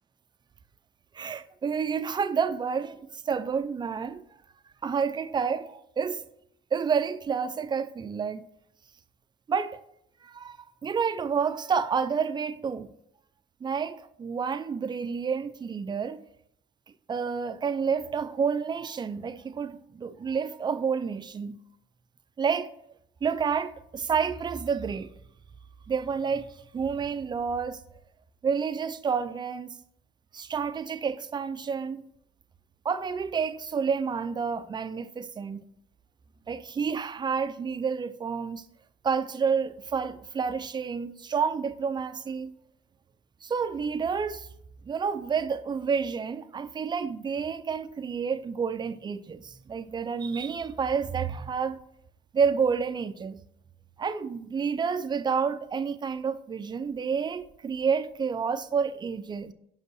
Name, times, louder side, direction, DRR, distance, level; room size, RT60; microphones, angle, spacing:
voice 1, 1.1-4.2 4.8-6.2 6.7-8.4 9.5-9.8 10.2-12.9 13.6-16.2 17.1-21.6 22.4-22.7 23.2-25.1 25.9-27.8 28.4-29.8 30.3-32.0 32.8-35.6 36.5-38.6 39.0-42.5 43.4-44.5 44.8-51.8 52.3-53.4 54.0-59.5, right 6 dB, 25° right, 0.5 m, -29 dB
5.5 x 5.4 x 6.3 m
cardioid pair, 110°, 17 cm